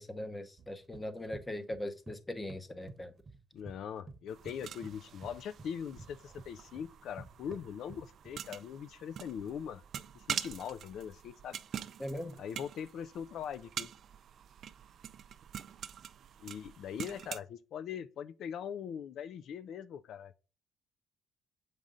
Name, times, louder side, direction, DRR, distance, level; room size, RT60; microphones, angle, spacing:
voice 1, 0.0-3.1 12.0-12.4, left 1 dB, 15° left, 0.8 m, -40 dB
sound 1, 0.6-2.2 2.5-3.8 4.1-8.4, right 3 dB, 40° right, 1.0 m, -51 dB
voice 2, 3.5-9.8 10.1-11.6 12.4-13.9 16.4-20.4, left 8 dB, 70° left, 0.3 m, -41 dB
sound 2, 4.3-17.4, right 9 dB, 60° right, 0.4 m, -45 dB
7.3 x 5.2 x 3.7 m
cardioid pair, 105°, 0 cm